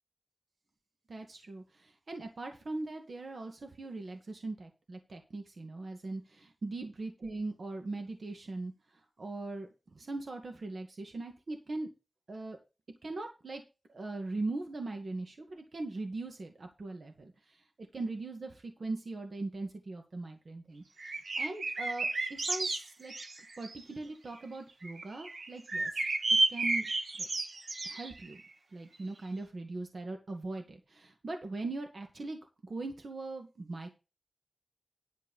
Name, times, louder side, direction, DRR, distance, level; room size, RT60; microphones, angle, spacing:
voice 1, 1.1-8.7 9.2-9.7 9.9-11.9 12.3-12.6 13.0-13.6 13.9-17.6 17.9-21.1 21.4-22.7 23.0-23.1 23.6-25.9 26.5-26.9 27.2-27.3 27.8-28.4 28.7-33.9, right 2 dB, 65° right, 4 dB, 1.9 m, -40 dB
sound 1, 21.0-23.8 24.8-28.4, right 2 dB, 90° right, 1.7 m, -32 dB
11.0 x 4.6 x 7.1 m, 0.29 s
wide cardioid pair, 90°, 0 cm